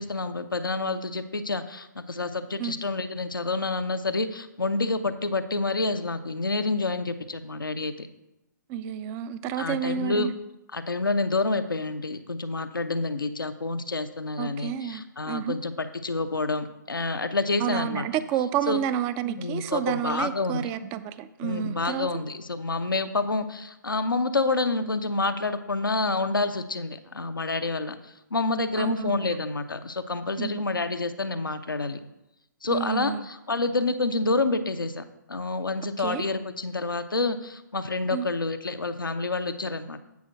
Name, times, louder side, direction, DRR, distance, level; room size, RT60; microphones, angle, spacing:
voice 1, 0.0-8.1 9.6-10.3 10.7-18.1 18.7-18.8 19.4-20.7 21.4-28.0 28.3-32.0 32.6-40.0, left 3 dB, 85° left, 8 dB, 0.7 m, -28 dB
voice 2, 8.7-10.3 14.4-15.6 17.6-22.1 28.8-29.3 30.4-30.6 32.7-33.2 36.0-36.2 38.1-38.3, right 9 dB, 20° right, 13 dB, 0.4 m, -30 dB
8.3 x 4.3 x 6.3 m, 0.92 s
figure-of-eight pair, 130°, 11 cm